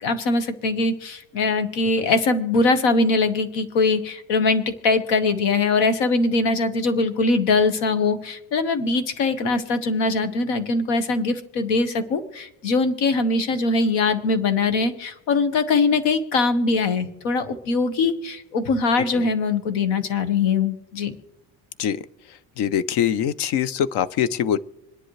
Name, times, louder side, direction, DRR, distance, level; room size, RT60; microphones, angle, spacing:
voice 1, 0.0-21.1, left 3 dB, 85° left, 10 dB, 1.4 m, -22 dB
voice 2, 22.6-24.6, left 9 dB, 70° left, 17 dB, 0.7 m, -23 dB
26.0 x 10.5 x 3.2 m, 0.93 s
cardioid pair, 155°, 43 cm